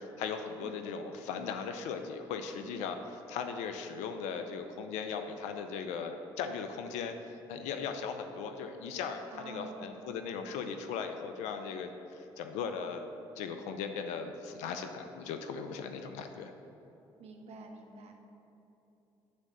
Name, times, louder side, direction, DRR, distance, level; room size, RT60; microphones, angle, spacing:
voice 1, 0.0-13.1 13.4-16.5, left 6 dB, 85° left, 7 dB, 0.5 m, -38 dB
voice 2, 9.3-9.9 17.2-18.1, right 3 dB, 65° right, 3 dB, 1.1 m, -48 dB
9.6 x 3.6 x 6.7 m, 3.0 s
supercardioid pair, 60°, 12 cm